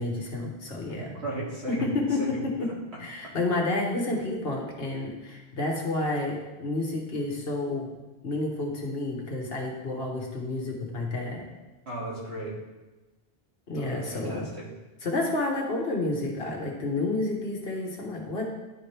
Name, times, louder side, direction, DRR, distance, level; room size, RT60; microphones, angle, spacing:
voice 1, 0.0-1.1 1.7-2.7 3.0-7.9 8.2-11.5 13.7-14.5 15.0-18.5, left 2 dB, 65° left, -1 dB, 1.4 m, -30 dB
voice 2, 1.2-1.9 2.2-2.4 11.9-12.6 13.8-14.7, right 2 dB, 80° right, -7 dB, 2.7 m, -35 dB
11.0 x 4.4 x 3.4 m, 1.1 s
omnidirectional pair, 1.1 m